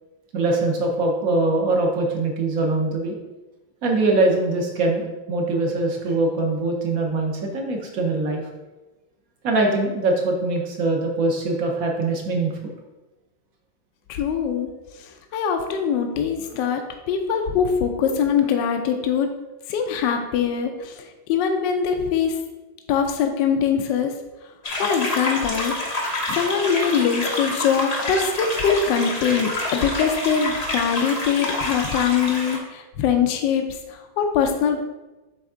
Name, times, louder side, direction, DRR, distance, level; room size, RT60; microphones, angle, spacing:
voice 1, 0.3-3.2 3.8-8.4 9.4-12.5, right 2 dB, 60° right, 1 dB, 1.0 m, -22 dB
voice 2, 14.1-19.3 19.7-22.4 22.9-24.1 24.8-25.7 26.3-34.8, left 7 dB, 75° left, 5 dB, 1.1 m, -23 dB
sound 1, 24.6-32.6, left 2 dB, 55° left, 0.4 m, -27 dB
7.9 x 3.4 x 3.7 m, 1.1 s
omnidirectional pair, 2.2 m